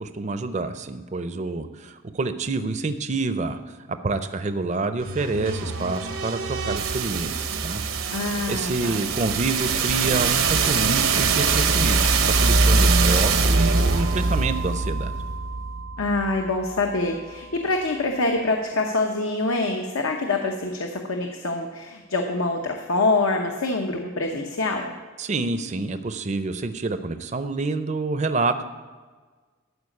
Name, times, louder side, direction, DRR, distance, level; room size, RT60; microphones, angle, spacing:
voice 1, 0.0-3.6 3.9-7.8 8.5-12.0 12.3-15.1 25.2-28.6, right 3 dB, 35° right, 10 dB, 0.5 m, -27 dB
sound 1, 5.0-16.9, right 4 dB, 80° right, 0.9 m, -23 dB
voice 2, 8.1-9.0 16.0-24.9, left 2 dB, 90° left, 3 dB, 0.9 m, -25 dB
12.5 x 4.9 x 8.4 m, 1.4 s
head